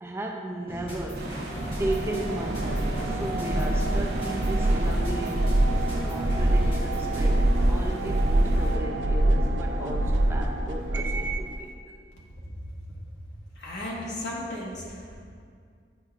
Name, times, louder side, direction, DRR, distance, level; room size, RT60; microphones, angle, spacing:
voice 1, 0.0-1.3 1.8-5.5 6.0-11.7, right 1 dB, 15° right, 1 dB, 0.3 m, -35 dB
sound 1, 0.7-7.5, equal, 30° left, 1.2 m, -39 dB
sound 2, 0.9-11.5, right 1 dB, 85° right, 0.5 m, -25 dB
sound 3, 1.1-8.8, right 1 dB, 60° right, 0.9 m, -37 dB
voice 2, 13.5-15.1, left 1 dB, 75° left, -5 dB, 1.3 m, -35 dB
8.7 x 4.6 x 2.4 m, 2.2 s
head